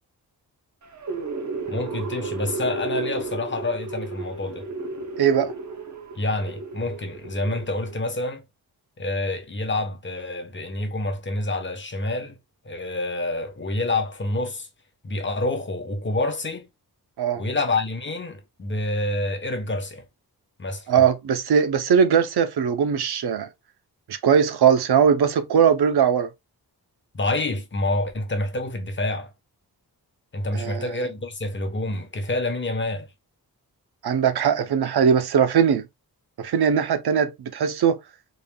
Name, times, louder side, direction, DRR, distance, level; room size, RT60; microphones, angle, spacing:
sound 1, 0.8-8.1, right 3 dB, 50° right, 0.9 m, -33 dB
voice 1, 1.7-4.6 6.1-8.4 9.0-12.4 12.6-14.7 15.0-16.7 17.4-20.0 20.6-20.9 27.1-29.3 30.3-33.1, left 2 dB, 30° left, 0.9 m, -27 dB
voice 2, 5.2-5.5 17.2-17.4 20.9-23.5 24.1-26.3 30.5-30.8 34.0-35.8 36.4-38.0, right 7 dB, 90° right, 0.7 m, -20 dB
4.0 x 3.5 x 2.2 m
wide cardioid pair, 135°, 38 cm